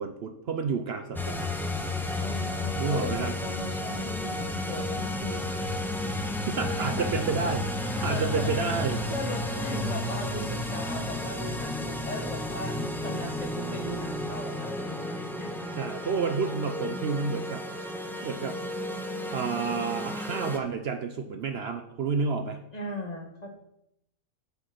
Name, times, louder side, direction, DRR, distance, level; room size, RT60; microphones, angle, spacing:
voice 1, 0.0-1.5 2.8-3.3 6.2-9.0 15.8-17.6 18.2-18.6 19.3-22.6, right 5 dB, 60° right, 7 dB, 0.8 m, -30 dB
sound 1, 1.2-20.6, left 1 dB, ahead, 0.6 m, -32 dB
voice 2, 2.2-5.5 6.7-7.2 7.8-8.8 9.1-15.5 16.0-16.2 22.7-23.5, left 2 dB, 30° left, 2 dB, 1.3 m, -38 dB
7.9 x 5.8 x 5.8 m, 0.79 s
omnidirectional pair, 1.3 m